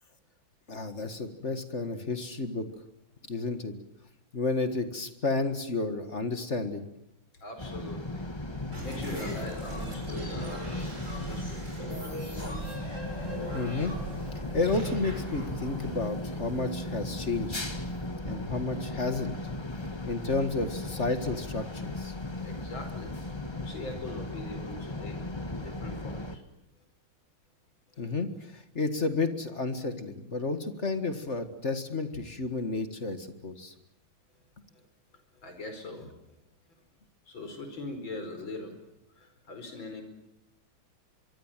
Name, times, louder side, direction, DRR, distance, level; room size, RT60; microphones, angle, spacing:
voice 1, 0.7-2.7 3.3-3.7 4.3-6.8 13.5-13.9 14.5-17.6 18.2-19.3 20.0-22.1 28.0-33.7, left 3 dB, 35° left, 9 dB, 1.9 m, -31 dB
voice 2, 7.4-8.3 8.8-10.9 11.3-12.3 18.1-18.2 22.4-23.1 23.6-26.4 28.0-28.1 34.7-34.8 35.4-36.1 37.3-38.8 39.2-40.0, left 2 dB, 65° left, 7 dB, 5.7 m, -42 dB
sound 1, 7.6-26.4, left 2 dB, 15° left, 1.4 m, -37 dB
sound 2, 8.7-16.9, right 1 dB, 35° right, 6.6 m, -40 dB
24.5 x 24.5 x 7.5 m, 0.83 s
omnidirectional pair, 2.3 m